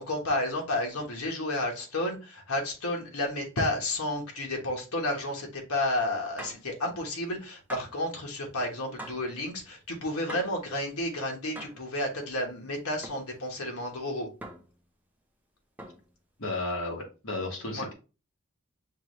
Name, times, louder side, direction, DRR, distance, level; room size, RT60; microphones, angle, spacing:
voice 1, 0.0-14.3 17.7-17.9, left 1 dB, 90° left, 1 dB, 1.2 m, -31 dB
sound 1, 6.4-6.7 7.7-8.0 9.0-9.3 10.3-10.6 11.6-11.9 13.0-13.3 14.4-14.8 15.8-16.1, right 1 dB, 5° right, 0.5 m, -43 dB
voice 2, 16.4-17.9, left 2 dB, 70° left, 0 dB, 1.5 m, -33 dB
6.0 x 2.4 x 3.0 m, 0.32 s
head